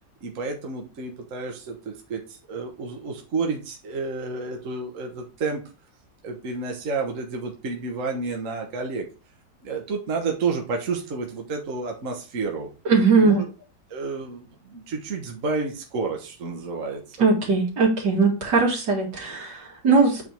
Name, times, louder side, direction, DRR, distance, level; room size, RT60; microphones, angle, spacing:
voice 1, 0.2-5.6 6.2-9.1 9.6-12.7 13.1-13.4 13.9-17.2, right 4 dB, 50° right, 1 dB, 1.4 m, -30 dB
voice 2, 12.8-13.4 17.2-20.2, right 4 dB, 75° right, -1 dB, 2.7 m, -20 dB
8.3 x 3.5 x 4.5 m, 0.32 s
omnidirectional pair, 1.9 m